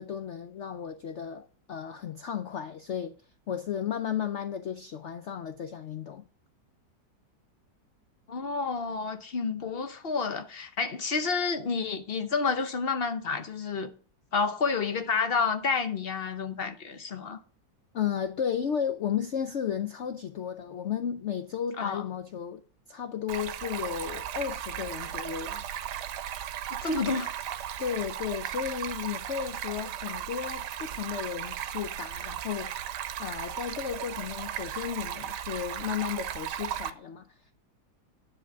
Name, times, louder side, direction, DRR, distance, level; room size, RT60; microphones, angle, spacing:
voice 1, 0.0-3.1 3.5-6.3 17.9-22.6 22.9-25.6 27.8-37.3, left 8 dB, 85° left, 0.6 m, -34 dB
voice 2, 8.3-13.9 14.3-17.4 21.8-22.0 26.7-27.3, left 5 dB, 45° left, 0.7 m, -29 dB
Stream, 23.3-36.9, right 10 dB, 70° right, 1.2 m, -36 dB
10.0 x 4.8 x 7.1 m
omnidirectional pair, 2.0 m